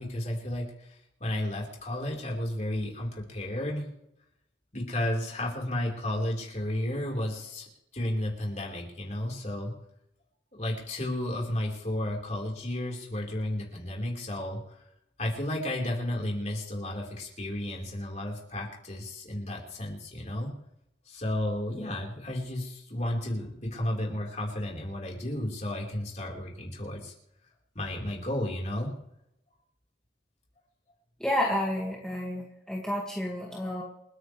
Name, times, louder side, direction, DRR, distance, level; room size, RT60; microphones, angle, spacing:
voice 1, 0.0-3.9 4.7-7.7 7.9-9.7 10.5-14.8 15.2-20.5 21.1-27.1 27.7-28.9, left 1 dB, 40° left, -1 dB, 4.2 m, -33 dB
voice 2, 31.2-33.8, left 1 dB, 5° left, -3 dB, 2.0 m, -30 dB
29.0 x 9.9 x 3.3 m, 0.80 s
head